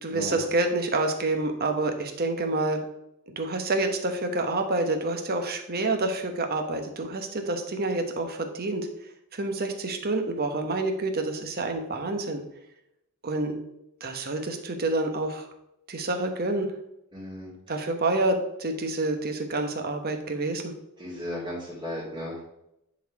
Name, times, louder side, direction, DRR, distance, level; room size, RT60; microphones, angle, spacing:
voice 1, 0.0-2.8 3.4-8.9 9.3-12.4 13.2-13.6 14.0-15.5 15.9-16.7 17.7-20.7, right 2 dB, 45° right, 5 dB, 1.1 m, -28 dB
voice 2, 17.1-17.5 21.0-22.4, left 1 dB, 20° right, -9 dB, 2.6 m, -35 dB
10.0 x 4.2 x 4.7 m, 0.82 s
head